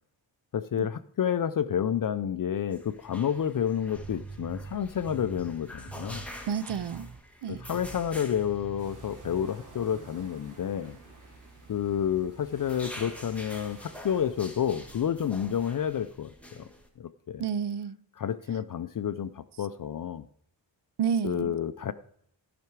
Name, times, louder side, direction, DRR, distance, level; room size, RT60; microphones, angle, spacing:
voice 1, 0.5-6.2 7.5-11.0 11.7-16.7 17.0-17.4 18.2-20.2 21.2-21.9, left 9 dB, 45° left, 0.4 m, -30 dB
sound 1, 2.7-16.9, left 1 dB, 5° left, 1.5 m, -48 dB
sound 2, 4.0-6.4 6.7-7.2 7.5-8.1 8.3-9.5, right 4 dB, 15° right, 0.3 m, -44 dB
voice 2, 6.5-7.1 7.4-7.6 17.4-18.0 21.0-21.6, right 7 dB, 65° right, 0.6 m, -30 dB
sound 3, 8.8-15.0, right 3 dB, 40° right, 2.6 m, -51 dB
14.0 x 5.9 x 4.7 m
wide cardioid pair, 130°, 46 cm